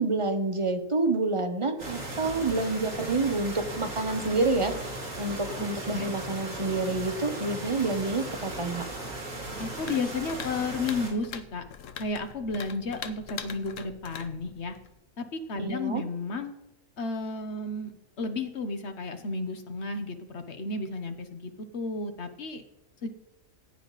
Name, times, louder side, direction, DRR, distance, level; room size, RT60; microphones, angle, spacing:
voice 1, 0.0-8.8 15.6-16.0, right 3 dB, 25° right, 7 dB, 0.9 m, -28 dB
sound 1, 1.8-11.1, right 2 dB, 75° right, 3.4 m, -37 dB
voice 2, 9.6-11.6 12.0-14.8 15.2-16.5 17.0-22.6 23.0-23.1, left 3 dB, 55° left, 7 dB, 1.4 m, -33 dB
sound 2, 9.8-15.0, left 7 dB, 75° left, 1.1 m, -43 dB
15.5 x 8.9 x 4.1 m, 0.87 s
omnidirectional pair, 1.4 m